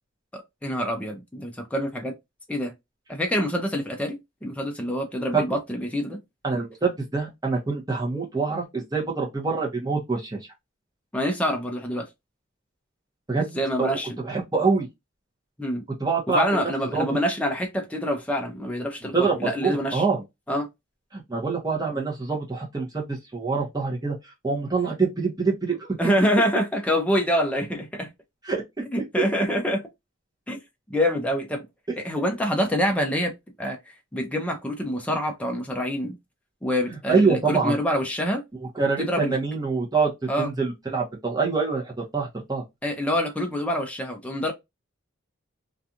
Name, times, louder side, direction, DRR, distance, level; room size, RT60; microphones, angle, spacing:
voice 1, 0.3-2.1 2.5-2.7 3.1-6.2 11.1-12.1 13.4-14.2 15.6-15.8 16.3-20.0 20.5-20.7 26.0-28.1 28.9-29.8 30.5-30.6 30.9-31.7 32.0-33.3 33.6-33.8 34.1-36.2 36.6-38.4 39.0-39.4 40.3-40.5 42.8-44.5, equal, 5° left, 0.5 m, -26 dB
voice 2, 6.4-10.4 13.3-13.5 13.8-13.9 14.2-14.9 16.0-16.6 16.9-17.1 19.1-20.2 21.1-24.2 24.4-25.9 28.5-28.6 29.2-29.3 36.9-37.8 38.8-42.6, right 4 dB, 20° right, 0.8 m, -25 dB
2.5 x 2.3 x 2.7 m
head